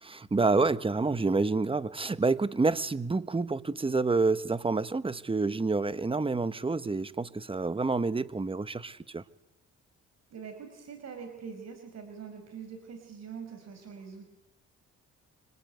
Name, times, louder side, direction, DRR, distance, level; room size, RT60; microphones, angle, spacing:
voice 1, 0.0-9.2, right 3 dB, 20° right, 1.2 m, -28 dB
voice 2, 10.3-14.3, right 6 dB, 60° right, 5.1 m, -44 dB
25.5 x 25.0 x 9.2 m
cardioid pair, 90°, 30 cm